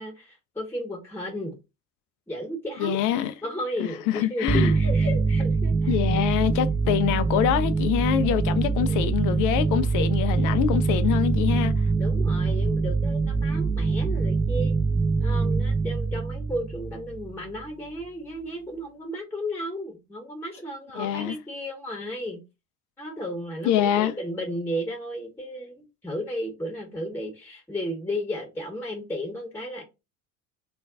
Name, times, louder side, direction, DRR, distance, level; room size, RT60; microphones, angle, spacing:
voice 1, 0.0-1.6 2.3-6.4 8.8-9.2 12.0-14.7 15.2-22.4 23.0-25.7 26.0-29.8, equal, 5° left, 0.9 m, -34 dB
voice 2, 2.8-3.3 3.8-4.7 5.9-11.7 21.0-21.4 23.6-24.1, left 11 dB, 45° left, 0.5 m, -25 dB
sound 1, 4.5-17.6, right 4 dB, 10° right, 0.6 m, -24 dB
2.4 x 2.2 x 3.5 m
figure-of-eight pair, 65°, 44 cm